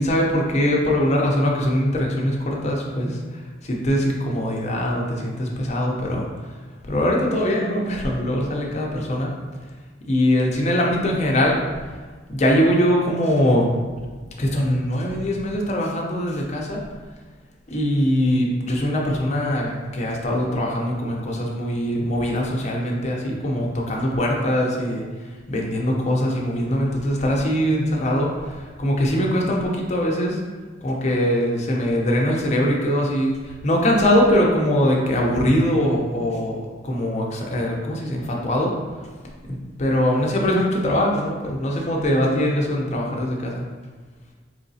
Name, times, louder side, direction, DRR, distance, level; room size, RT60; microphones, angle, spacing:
voice 1, 0.0-6.3 6.8-9.3 10.0-11.6 12.3-13.7 14.4-16.8 17.7-25.0 25.5-30.4 30.8-38.7 39.5-43.6, equal, 35° left, -1 dB, 0.6 m, -22 dB
3.9 x 3.1 x 2.7 m, 1.4 s
head